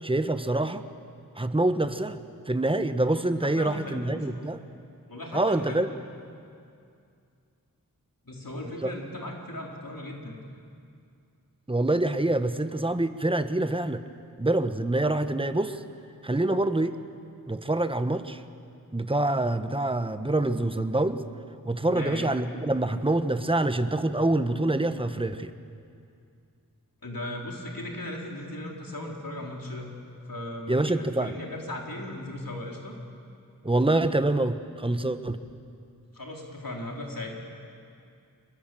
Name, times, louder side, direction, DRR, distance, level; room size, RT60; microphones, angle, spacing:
voice 1, 0.0-0.9 1.4-4.6 5.3-5.9 8.8-8.9 11.7-14.0 14.4-15.8 16.2-17.0 17.5-18.4 18.9-21.2 21.6-25.5 30.7-31.4 33.6-35.4, right 2 dB, 15° right, 9 dB, 1.1 m, -26 dB
voice 2, 3.4-4.5 5.1-5.8 8.2-10.4 21.8-22.4 27.0-29.9 30.3-33.0 36.1-37.3, left 1 dB, 70° left, -1 dB, 3.6 m, -37 dB
25.5 x 21.0 x 7.6 m, 2.4 s
wide cardioid pair, 45°, 35 cm